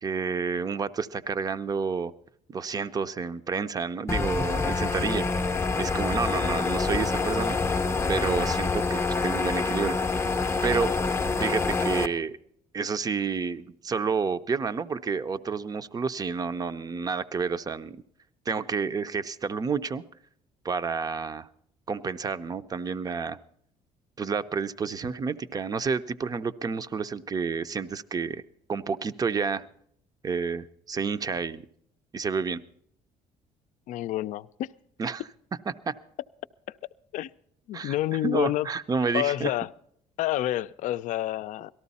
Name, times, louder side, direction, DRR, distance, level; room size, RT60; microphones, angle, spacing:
voice 1, 0.0-2.1 2.5-7.6 8.1-10.0 10.6-10.9 11.3-12.4 12.7-18.0 18.5-20.0 20.6-21.5 21.9-23.4 24.2-28.4 28.7-29.7 30.2-31.6 32.1-32.6 35.0-35.2 35.7-35.9 37.7-38.0 38.2-39.5, right 5 dB, 25° right, 0.6 m, -30 dB
sound 1, 4.1-12.1, left 4 dB, 20° left, 0.6 m, -26 dB
voice 2, 33.9-34.7 36.7-36.8 37.1-37.3 37.7-38.7 39.1-39.7 40.2-41.7, left 14 dB, 65° left, 0.5 m, -28 dB
18.0 x 13.5 x 4.1 m
cardioid pair, 110°, 14 cm